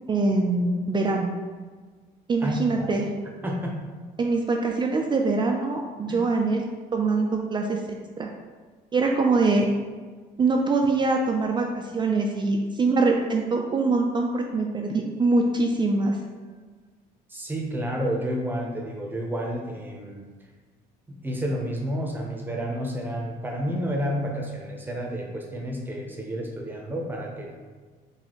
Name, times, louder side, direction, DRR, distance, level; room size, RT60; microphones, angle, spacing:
voice 1, 0.1-1.3 2.3-3.1 4.2-6.6 6.9-8.3 8.9-9.7 10.4-16.2, right 3 dB, 25° right, 1 dB, 0.3 m, -23 dB
voice 2, 2.4-2.9 3.4-3.8 6.1-6.2 17.3-20.3 21.1-27.6, equal, 10° right, 0 dB, 0.7 m, -30 dB
4.0 x 2.7 x 3.0 m, 1.5 s
cardioid pair, 110°, 17 cm